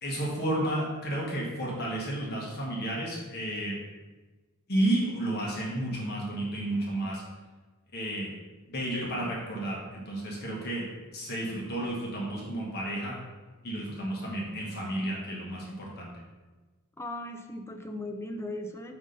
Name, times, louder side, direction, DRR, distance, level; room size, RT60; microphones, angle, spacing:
voice 1, 0.0-3.8 4.7-7.2 7.9-8.3 8.7-10.9 11.1-13.2 13.6-16.1, right 1 dB, 50° left, -3 dB, 1.3 m, -32 dB
voice 2, 17.0-19.0, left 1 dB, 10° left, 5 dB, 0.4 m, -37 dB
5.3 x 5.1 x 3.9 m, 1.2 s
head